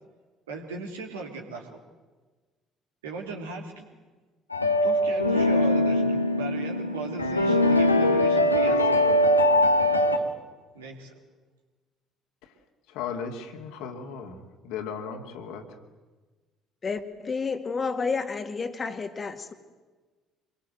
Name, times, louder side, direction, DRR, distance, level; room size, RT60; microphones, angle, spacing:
voice 1, 0.5-1.8 3.0-3.8 4.8-9.1 9.9-10.3 10.7-11.2, right 4 dB, 75° right, 1 dB, 3.5 m, -38 dB
sound 1, 4.5-10.2, left 1 dB, 85° left, 1.3 m, -22 dB
voice 2, 12.9-15.6, left 6 dB, 60° left, 5 dB, 2.6 m, -36 dB
voice 3, 16.8-19.5, left 4 dB, 30° left, 9 dB, 2.3 m, -30 dB
26.0 x 22.5 x 7.8 m, 1.3 s
figure-of-eight pair, 50°, 0 cm